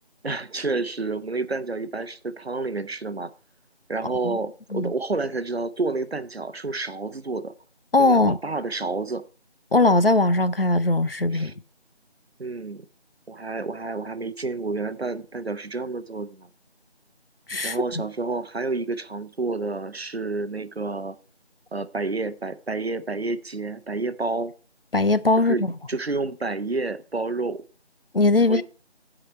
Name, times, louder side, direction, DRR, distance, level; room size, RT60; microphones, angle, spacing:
voice 1, 0.2-3.3 3.9-7.5 8.0-9.3 11.3-11.6 12.4-12.9 13.3-16.5 17.6-21.1 21.7-24.5 25.4-27.6 28.5-28.6, right 3 dB, 70° right, 0.8 m, -29 dB
voice 2, 7.9-8.4 9.7-11.5 17.5-17.8 24.9-25.7 28.1-28.6, left 2 dB, 60° left, 0.6 m, -20 dB
14.0 x 5.0 x 4.4 m
figure-of-eight pair, 180°, 33 cm